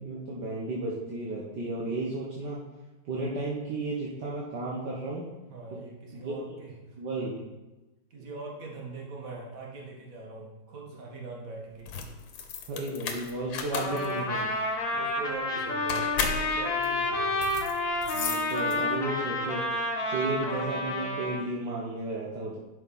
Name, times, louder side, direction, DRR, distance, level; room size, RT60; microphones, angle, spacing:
voice 1, 0.0-2.6 3.1-5.2 6.1-6.4 7.0-7.4 12.7-14.4 18.1-19.7 20.1-22.6, right 2 dB, 60° right, -5 dB, 1.8 m, -33 dB
voice 2, 5.5-7.0 8.1-11.9 14.8-17.5, right 3 dB, 45° right, -1 dB, 2.0 m, -42 dB
sound 1, 11.7-19.1, left 6 dB, 80° left, 1.6 m, -35 dB
Trumpet, 13.7-21.4, left 1 dB, 45° left, 1.6 m, -30 dB
10.5 x 5.9 x 4.2 m, 1.1 s
omnidirectional pair, 2.1 m